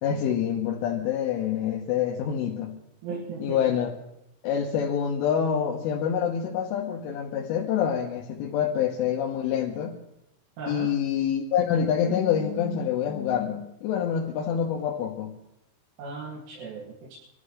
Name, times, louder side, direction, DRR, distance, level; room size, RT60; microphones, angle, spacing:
voice 1, 0.0-2.7 3.4-3.9 4.4-10.0 10.7-15.3, left 8 dB, 85° left, -1 dB, 3.7 m, -26 dB
voice 2, 3.0-3.8 10.6-10.9 16.0-17.1, right 4 dB, 85° right, -5 dB, 5.0 m, -37 dB
26.0 x 13.5 x 3.2 m, 0.84 s
omnidirectional pair, 5.5 m